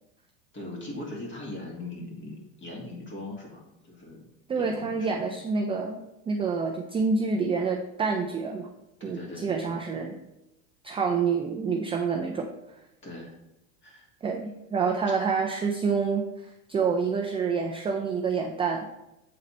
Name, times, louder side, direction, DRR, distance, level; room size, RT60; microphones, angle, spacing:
voice 1, 0.5-4.3 4.6-5.3 9.0-9.8 13.0-13.3 13.8-14.1, left 2 dB, 25° left, -1 dB, 2.1 m, -40 dB
voice 2, 4.5-8.7 9.0-10.2 10.8-12.5 14.2-18.9, right 5 dB, 15° right, 2 dB, 0.4 m, -28 dB
7.5 x 4.0 x 4.2 m, 0.91 s
supercardioid pair, 120°, 41 cm